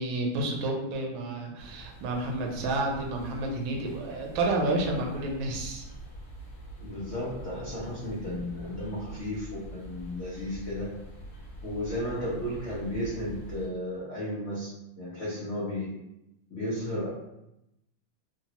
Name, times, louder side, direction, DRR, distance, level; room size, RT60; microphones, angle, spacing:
voice 1, 0.0-5.9, right 2 dB, 75° right, 0 dB, 1.3 m, -30 dB
sound 1, 1.6-13.7, right 1 dB, 60° left, 1.2 m, -45 dB
voice 2, 6.8-10.9 11.6-14.7 15.0-15.9 16.5-17.1, left 1 dB, 75° left, -8 dB, 0.6 m, -34 dB
3.4 x 2.0 x 2.8 m, 0.86 s
omnidirectional pair, 2.3 m